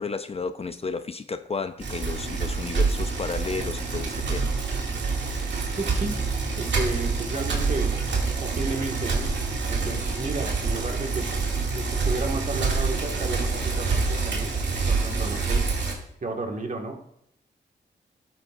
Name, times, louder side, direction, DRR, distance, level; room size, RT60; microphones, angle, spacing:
voice 1, 0.0-4.5, left 4 dB, 35° left, 0.5 m, -32 dB
Bicycle, 1.8-15.9, right 4 dB, 75° right, 2.5 m, -26 dB
voice 2, 5.7-6.2 6.6-7.9 8.4-9.3 9.7-11.3 11.7-14.5 14.9-15.6 16.2-17.0, right 3 dB, 45° right, 2.0 m, -32 dB
13.0 x 11.0 x 2.6 m
cardioid pair, 75°, 19 cm